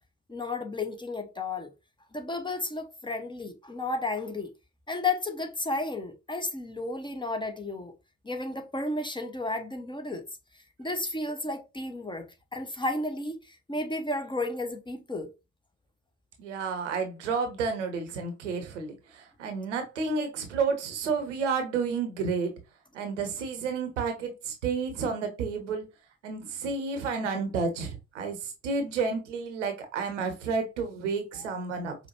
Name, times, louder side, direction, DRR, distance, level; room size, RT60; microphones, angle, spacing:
voice 1, 0.3-1.7 2.1-4.5 4.9-7.9 8.2-10.2 10.8-12.3 12.5-15.3, left 2 dB, 15° left, 0.7 m, -32 dB
voice 2, 16.4-22.5 22.9-25.9 26.2-32.0, right 5 dB, 80° right, 0.7 m, -31 dB
5.0 x 2.2 x 2.9 m
figure-of-eight pair, 40°, 36 cm